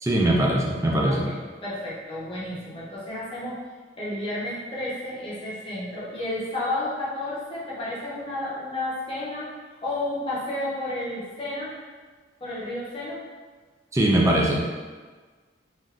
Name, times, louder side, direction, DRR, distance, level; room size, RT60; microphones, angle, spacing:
voice 1, 0.0-1.3 13.9-14.7, right 1 dB, 15° right, -2 dB, 0.4 m, -21 dB
voice 2, 1.1-3.6 4.0-9.5 9.8-11.7 12.4-13.2, left 1 dB, 30° left, -8 dB, 0.8 m, -31 dB
3.5 x 2.6 x 2.4 m, 1.4 s
head